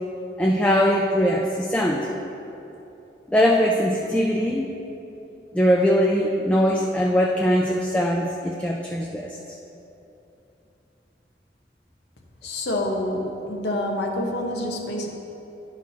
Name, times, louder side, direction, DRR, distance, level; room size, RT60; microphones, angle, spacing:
voice 1, 0.4-2.1 3.3-4.7 5.5-9.4, equal, 5° left, -2 dB, 0.3 m, -21 dB
voice 2, 12.4-15.1, left 1 dB, 75° left, 1 dB, 1.0 m, -27 dB
11.5 x 6.0 x 2.8 m, 2.9 s
head